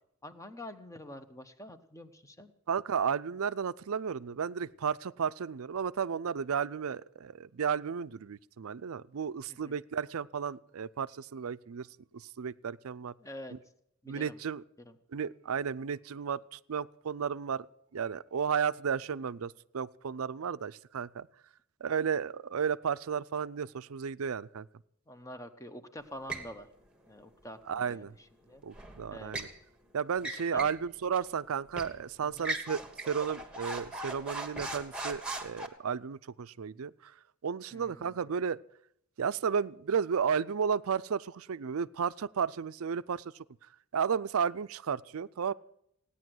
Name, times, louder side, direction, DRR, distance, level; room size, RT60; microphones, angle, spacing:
voice 1, 0.2-2.5 9.5-9.8 13.2-13.5 14.0-14.4 14.9-15.0 25.1-26.7 27.1-28.1 28.4-28.6 29.1-29.3 30.2-30.7 32.2-32.5 37.7-38.3, left 1 dB, 15° left, 10 dB, 1.0 m, -47 dB
voice 2, 2.7-11.9 12.1-13.1 13.5-13.6 14.1-14.6 15.1-17.7 17.9-21.3 21.8-24.7 27.7-28.1 28.6-29.5 29.9-37.1 37.4-38.6 39.2-43.4 43.9-45.5, right 6 dB, 70° right, 16 dB, 0.5 m, -33 dB
sound 1, 26.3-26.5 28.7-29.6 30.2-30.8 31.2-31.3 31.8-32.0 32.4-35.7, right 2 dB, 5° right, 1.5 m, -39 dB
16.5 x 10.0 x 7.8 m, 0.73 s
head